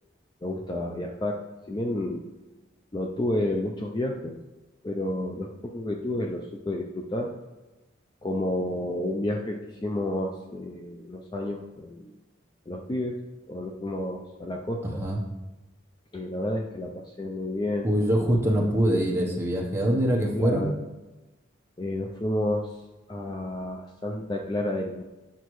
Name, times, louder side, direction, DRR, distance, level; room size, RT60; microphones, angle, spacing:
voice 1, 0.4-2.2 2.9-4.3 4.8-7.3 8.2-12.1 12.7-13.2 13.5-15.0 16.1-17.9 20.3-20.8 21.8-22.7 23.1-25.0, left 1 dB, 20° left, 1 dB, 0.4 m, -30 dB
voice 2, 14.8-15.2 17.8-20.7, right 1 dB, 10° right, -2 dB, 0.9 m, -24 dB
8.1 x 5.6 x 3.1 m, 1.1 s
head